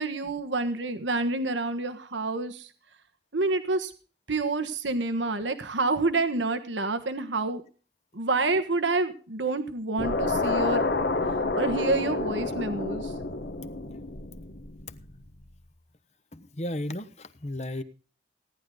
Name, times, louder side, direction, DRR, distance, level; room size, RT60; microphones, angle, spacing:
voice 1, 0.0-2.7 3.3-3.9 4.3-7.6 8.1-10.8 11.3-13.1, right 3 dB, 80° right, 9 dB, 1.4 m, -28 dB
sound 1, 10.0-15.3, left 3 dB, 60° left, 1.4 m, -29 dB
voice 2, 16.3-17.8, left 1 dB, 35° left, 11 dB, 1.1 m, -34 dB
17.5 x 11.0 x 3.8 m, 0.38 s
head